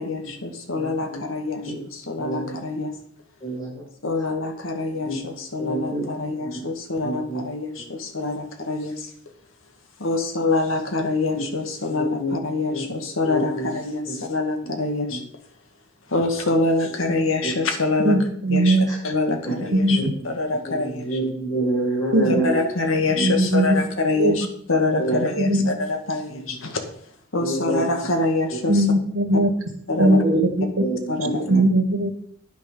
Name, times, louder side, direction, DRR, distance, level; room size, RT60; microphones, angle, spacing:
voice 1, 0.0-2.9 4.0-9.1 10.0-15.2 16.1-18.2 18.5-18.8 19.0-20.0 20.2-21.2 22.2-26.8 27.3-28.8 29.9-30.2 31.1-31.6, left 3 dB, 70° left, 4 dB, 2.0 m, -25 dB
voice 2, 0.8-1.2 1.6-1.8 2.2-2.6 3.4-3.8 5.0-5.2 5.6-6.0 6.4-6.7 7.0-7.4 11.3-11.4 11.9-12.3 12.7-12.8 13.2-13.7 15.1-15.2 18.9-19.0 19.4-19.6 19.9-20.1 20.6-22.6 23.1-23.2 25.0-25.2 26.3-26.4 27.4-27.8 30.2-30.4 30.8-31.0 31.5-31.6, right 1 dB, 20° left, -4 dB, 6.0 m, -27 dB
voice 3, 18.0-18.9 19.7-20.1 22.1-22.5 23.2-23.8 24.2-24.3 25.4-25.7 28.7-29.5 30.0-30.8 31.4-32.1, right 1 dB, 90° right, 7 dB, 1.8 m, -19 dB
10.0 x 9.7 x 5.6 m, 0.63 s
head